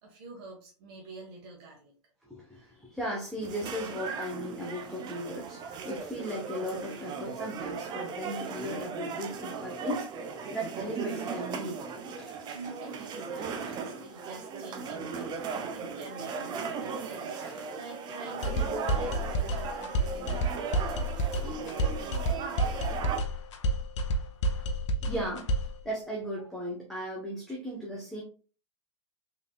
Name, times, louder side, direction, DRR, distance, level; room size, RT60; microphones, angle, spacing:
voice 1, 0.0-1.9 2.5-2.8 12.5-20.6, right 2 dB, 55° right, 1.3 m, -47 dB
voice 2, 2.2-12.6 14.1-14.2 17.3-17.7 25.0-25.5 25.8-28.2, equal, ahead, 0.9 m, -37 dB
sound 1, 3.4-23.2, right 5 dB, 30° right, 0.6 m, -37 dB
sound 2, 18.4-25.8, right 1 dB, 70° left, 0.7 m, -30 dB
3.6 x 3.6 x 2.3 m
hypercardioid pair, 120°, 16 cm